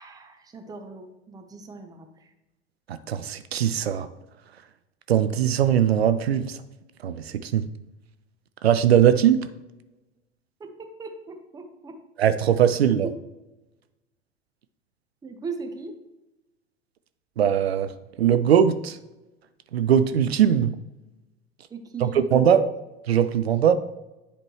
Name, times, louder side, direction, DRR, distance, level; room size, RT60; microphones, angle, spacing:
voice 1, 0.0-2.3 10.6-12.0 13.0-13.1 15.2-16.0 21.7-22.6, right 4 dB, 10° right, 6 dB, 0.7 m, -38 dB
voice 2, 3.1-4.1 5.1-6.6 7.0-7.7 8.6-9.4 12.2-13.1 17.4-17.9 18.2-19.0 19.7-20.7 22.0-22.7 23.1-23.8, right 9 dB, 70° right, 11 dB, 0.5 m, -20 dB
10.0 x 4.4 x 3.1 m, 1.0 s
figure-of-eight pair, 85°, 32 cm